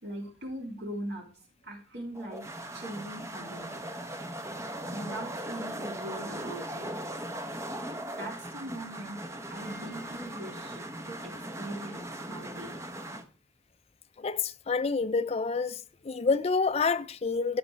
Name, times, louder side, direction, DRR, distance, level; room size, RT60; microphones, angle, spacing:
voice 1, 0.0-1.3 1.6-2.5 2.7-3.8 4.9-6.9 8.2-9.2 9.5-12.8, right 1 dB, 65° right, 2.9 m, -40 dB
sound 1, 2.1-13.2, right 1 dB, 15° right, 0.8 m, -39 dB
voice 2, 14.2-15.8 16.0-17.6, left 4 dB, 35° left, 0.5 m, -28 dB
14.5 x 6.0 x 3.2 m
head